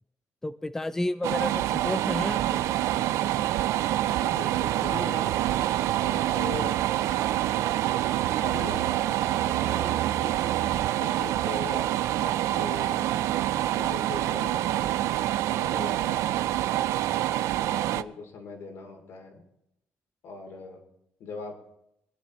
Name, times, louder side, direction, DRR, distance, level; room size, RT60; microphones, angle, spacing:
voice 1, 0.4-2.6, left 1 dB, 10° left, 12 dB, 0.4 m, -31 dB
sound 1, 1.2-18.0, right 13 dB, 80° right, 0.4 m, -26 dB
voice 2, 4.0-5.4 6.0-6.7 8.3-9.0 9.4-11.9 12.2-13.1 13.7-14.9 15.5-16.4 17.7-19.5 20.2-20.8 21.2-21.6, left 4 dB, 70° left, 2 dB, 3.0 m, -40 dB
23.0 x 10.0 x 3.2 m, 0.80 s
cardioid pair, 135°, 5 cm